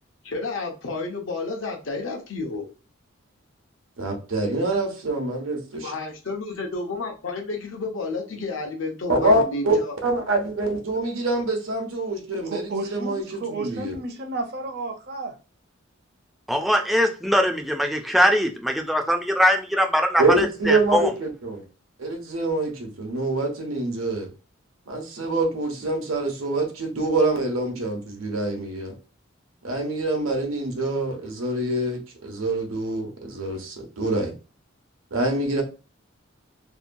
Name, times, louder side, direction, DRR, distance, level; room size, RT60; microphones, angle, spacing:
voice 1, 0.2-2.7 5.8-9.9, left 3 dB, 70° left, 0.7 m, -31 dB
voice 2, 4.0-5.9 9.1-14.0 20.2-21.6 22.0-24.3 24.9-28.9 29.6-34.3 35.1-35.6, right 2 dB, 90° right, 0.8 m, -25 dB
voice 3, 12.5-15.4, right 2 dB, 50° right, 0.6 m, -32 dB
voice 4, 16.5-21.1, equal, ahead, 0.3 m, -21 dB
2.8 x 2.2 x 2.5 m
head